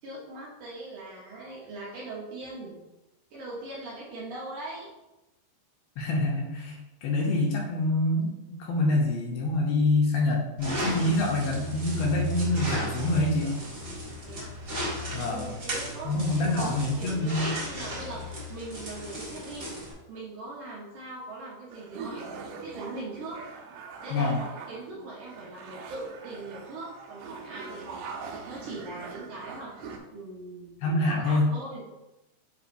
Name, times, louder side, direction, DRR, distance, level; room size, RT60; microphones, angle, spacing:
voice 1, 0.0-2.8 3.3-4.9 11.2-11.3 14.2-14.5 15.2-19.7 20.1-23.4 24.0-31.9, right 2 dB, 65° right, -6 dB, 2.1 m, -41 dB
voice 2, 6.0-8.3 8.6-13.6 15.1-15.5 16.0-17.5 24.1-24.4 30.8-31.5, left 2 dB, 75° left, -1 dB, 2.4 m, -26 dB
sound 1, 10.6-19.9, right 1 dB, 45° right, 1.3 m, -35 dB
sound 2, 21.7-30.0, right 5 dB, 85° right, 2.7 m, -42 dB
9.9 x 3.9 x 2.6 m, 0.99 s
omnidirectional pair, 4.7 m